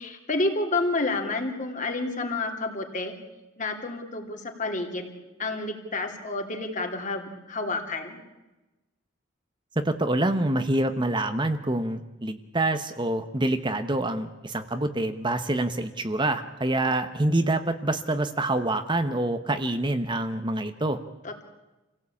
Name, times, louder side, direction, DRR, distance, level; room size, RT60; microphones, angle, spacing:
voice 1, 0.0-3.2 3.6-5.1 5.4-8.2 21.2-21.4, left 2 dB, 40° left, 3 dB, 3.0 m, -29 dB
voice 2, 9.8-21.0, right 1 dB, 25° right, 9 dB, 1.0 m, -26 dB
27.5 x 17.0 x 8.6 m, 1.1 s
head